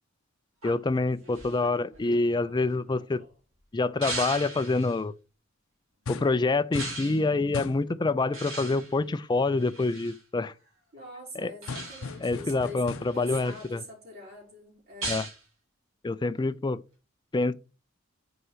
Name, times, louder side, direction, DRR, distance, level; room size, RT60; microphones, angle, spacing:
voice 1, 0.6-3.2 3.7-5.1 6.1-10.5 11.4-11.5 12.2-13.8 15.1-15.2 16.0-16.8 17.3-17.5, left 3 dB, 20° left, 0.4 m, -26 dB
sound 1, 0.6-3.3 4.0-5.0 6.7-7.3 8.3-10.2 11.6-12.3 12.8-13.8 15.0-15.4, right 2 dB, 85° right, 2.9 m, -39 dB
sound 2, 6.0-6.4 6.7-7.1 7.5-7.9 11.7-13.3, left 4 dB, 80° left, 0.6 m, -37 dB
voice 2, 10.9-15.2, equal, 50° right, 3.8 m, -44 dB
5.5 x 4.8 x 5.8 m
head